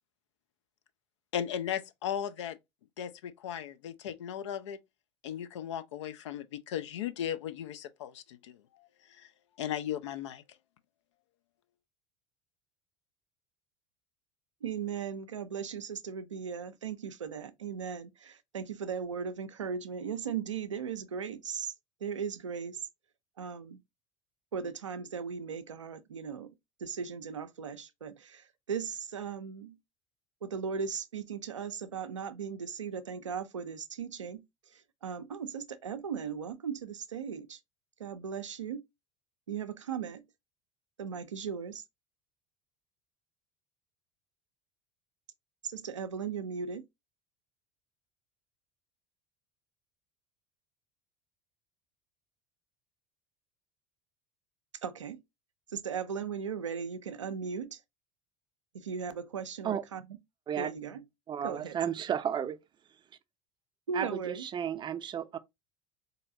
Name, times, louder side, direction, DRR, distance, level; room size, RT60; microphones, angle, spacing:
voice 1, 1.3-2.6 3.0-4.8 5.2-9.3 9.6-10.4, left 10 dB, 75° left, 0.4 m, -37 dB
voice 2, 14.6-21.7 22.0-22.8 23.4-23.8 24.5-26.5 26.8-29.8 30.4-34.4 34.7-37.6 38.0-38.8 39.5-40.2 41.0-41.8 45.6-46.8 54.8-55.2 55.7-57.8 58.7-60.0 60.6-61.0 61.4-61.8 63.9-64.4, right 6 dB, 90° right, 0.4 m, -37 dB
voice 3, 61.3-62.6 63.9-65.4, right 9 dB, 30° right, 0.4 m, -33 dB
3.8 x 2.7 x 2.5 m
hypercardioid pair, 70°, 15 cm